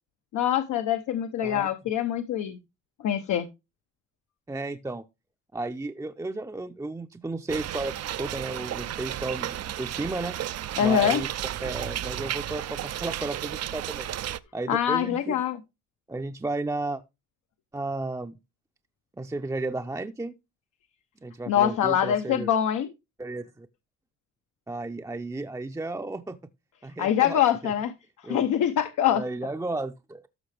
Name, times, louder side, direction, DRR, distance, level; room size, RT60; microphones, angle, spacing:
voice 1, 0.3-2.6 3.0-3.5 10.8-11.2 14.7-15.6 21.5-22.9 27.0-27.9 28.2-29.2, left 10 dB, 75° left, 1.0 m, -24 dB
voice 2, 4.5-5.0 5.5-10.3 10.8-11.3 11.6-14.1 14.5-15.4 16.1-17.0 17.7-18.4 19.2-20.3 21.2-22.5 23.2-23.7 24.7-26.4 26.8-27.4 28.2-28.4 29.1-30.3, right 2 dB, 10° right, 0.6 m, -33 dB
sound 1, 7.5-14.4, right 12 dB, 55° right, 0.6 m, -33 dB
13.0 x 5.7 x 3.4 m
cardioid pair, 90°, 30 cm